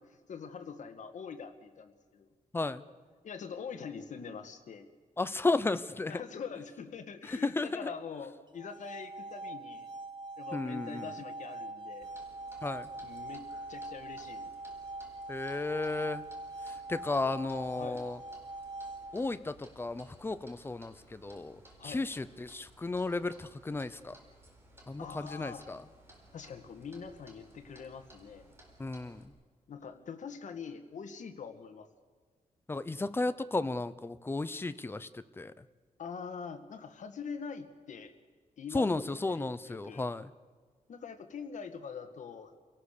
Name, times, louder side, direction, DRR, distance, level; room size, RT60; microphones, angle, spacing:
voice 1, 0.0-2.3 3.2-4.9 6.1-9.9 10.4-12.1 13.0-14.5 17.8-18.1 21.8-22.1 25.0-25.7 26.3-28.5 29.7-31.9 36.0-38.1 38.6-40.0 40.9-42.6, left 6 dB, 60° left, 6 dB, 1.8 m, -44 dB
voice 2, 5.2-6.1 7.4-7.9 10.5-11.0 12.6-12.9 15.3-16.2 16.9-18.2 19.1-21.6 21.8-24.1 24.9-25.8 28.8-29.2 32.7-35.1 35.4-35.5 38.7-40.3, left 3 dB, 15° left, 13 dB, 0.7 m, -33 dB
sound 1, 8.5-19.5, right 2 dB, 35° right, 1.6 m, -43 dB
Clock, 12.0-29.3, right 1 dB, 20° right, 4.2 m, -58 dB
28.5 x 18.0 x 6.8 m, 1.5 s
wide cardioid pair, 150°, 14 cm